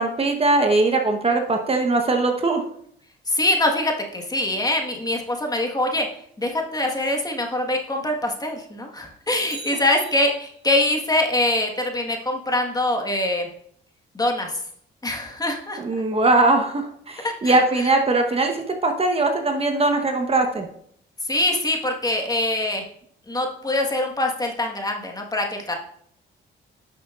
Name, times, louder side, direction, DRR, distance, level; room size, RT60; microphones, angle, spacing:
voice 1, 0.0-2.6 15.8-20.7, right 2 dB, 30° right, 4 dB, 1.0 m, -20 dB
voice 2, 3.3-6.1 6.4-13.5 14.1-14.5 15.0-15.8 17.2-17.6 21.2-22.8 23.3-25.7, left 1 dB, 20° left, 2 dB, 1.4 m, -24 dB
Bicycle, 9.4-10.8 19.1-19.2, right 3 dB, 50° right, 2.4 m, -42 dB
11.0 x 6.3 x 2.4 m, 0.65 s
cardioid pair, 90°, 20 cm